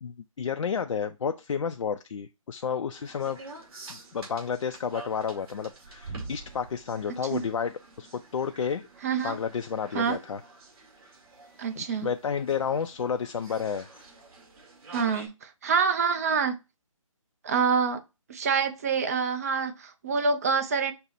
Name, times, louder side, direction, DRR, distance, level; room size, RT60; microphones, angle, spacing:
voice 1, 0.0-3.4 3.9-8.9 9.2-10.4 11.8-13.9, left 6 dB, 65° left, 0.4 m, -31 dB
sound 1, 2.9-15.3, right 3 dB, 45° right, 2.3 m, -47 dB
voice 2, 9.0-9.4 9.9-10.2 11.6-12.1 14.9-16.5 17.4-18.0 18.3-20.9, right 5 dB, 30° right, 0.5 m, -26 dB
5.3 x 2.1 x 4.0 m
figure-of-eight pair, 155°, 18 cm